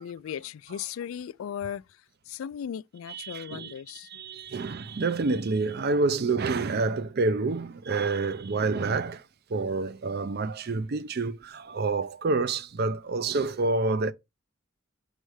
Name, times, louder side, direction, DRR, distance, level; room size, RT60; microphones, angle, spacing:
voice 1, 0.0-1.8 2.3-4.1, left 8 dB, 85° left, 0.3 m, -36 dB
voice 2, 3.1-3.7 4.0-14.1, right 3 dB, 50° right, 0.5 m, -28 dB
6.4 x 3.2 x 4.8 m
head